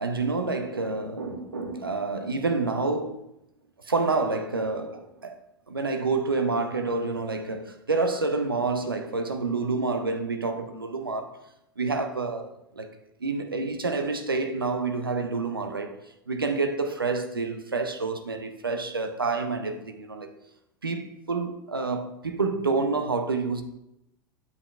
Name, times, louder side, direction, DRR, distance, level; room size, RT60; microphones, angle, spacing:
voice 1, 0.0-3.2 3.8-5.4 5.7-11.4 11.8-12.9 13.2-16.0 16.3-20.3 20.8-23.6, right 3 dB, 85° right, 0.7 m, -28 dB
8.6 x 6.3 x 2.3 m
figure-of-eight pair, 80°, 12 cm